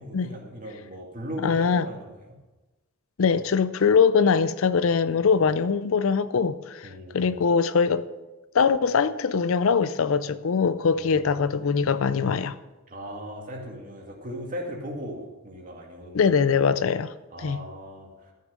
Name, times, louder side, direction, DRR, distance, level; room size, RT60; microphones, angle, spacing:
voice 1, 0.0-2.1 6.8-7.4 10.9-11.3 12.9-16.6 17.3-18.3, equal, 40° right, 2.2 m, -38 dB
voice 2, 1.4-1.9 3.2-6.9 7.1-8.1 8.5-12.5 16.1-17.1 17.4-17.6, left 5 dB, 70° left, 0.5 m, -22 dB
13.0 x 6.6 x 6.4 m
head